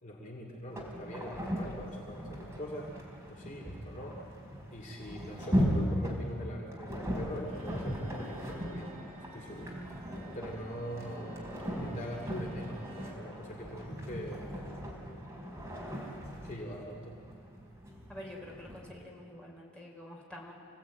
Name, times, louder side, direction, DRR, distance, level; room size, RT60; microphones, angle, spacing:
voice 1, 0.0-3.0 3.3-4.2 4.7-8.9 9.3-9.7 10.3-14.6 16.4-17.2, equal, 40° left, -1 dB, 2.8 m, -43 dB
sound 1, 0.7-18.9, equal, 15° right, 4.6 m, -38 dB
Bowed string instrument, 7.4-13.3, right 1 dB, 40° right, 2.4 m, -54 dB
voice 2, 18.1-20.5, left 1 dB, 5° left, -3 dB, 4.8 m, -47 dB
27.0 x 17.5 x 9.1 m, 2.4 s
head